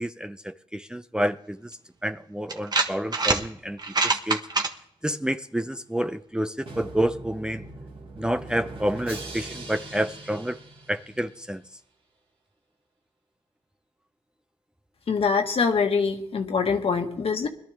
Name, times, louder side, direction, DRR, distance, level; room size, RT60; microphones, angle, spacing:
voice 1, 0.0-1.7 2.0-3.8 4.0-4.4 5.0-7.6 8.2-10.6 10.9-11.6, equal, 5° right, 0.5 m, -29 dB
sound 1, 1.7-1.8 2.5-3.4 3.8-4.7, right 3 dB, 40° right, 1.4 m, -24 dB
Drum, 6.7-11.5, right 2 dB, 60° right, 2.6 m, -41 dB
voice 2, 15.1-17.5, left 5 dB, 60° left, 1.6 m, -24 dB
21.0 x 12.0 x 3.5 m
cardioid pair, 70°, 11 cm